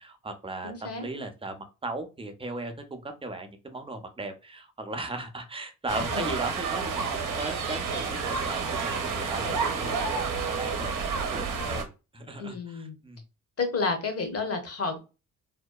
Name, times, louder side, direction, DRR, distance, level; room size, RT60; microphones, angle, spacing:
voice 1, 0.0-13.2, right 2 dB, 15° right, 6 dB, 0.6 m, -37 dB
voice 2, 0.6-1.1 6.0-6.3 12.4-12.9 13.6-15.0, left 4 dB, 40° left, 7 dB, 0.9 m, -31 dB
sound 1, 5.9-11.8, right 5 dB, 55° right, 0.7 m, -30 dB
2.8 x 2.1 x 2.2 m, 0.29 s
supercardioid pair, 60°, 38 cm